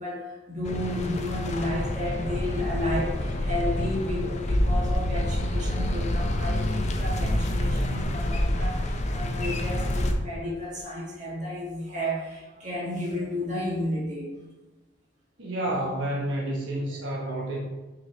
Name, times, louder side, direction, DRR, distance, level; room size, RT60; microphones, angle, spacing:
voice 1, 0.0-14.3 16.8-16.9 17.3-17.5, left 1 dB, 40° right, -5 dB, 1.9 m, -32 dB
sound 1, 0.6-10.1, left 1 dB, 35° left, 0.6 m, -27 dB
voice 2, 15.4-17.6, right 1 dB, 75° right, -3 dB, 1.0 m, -29 dB
6.9 x 5.3 x 3.0 m, 1.1 s
head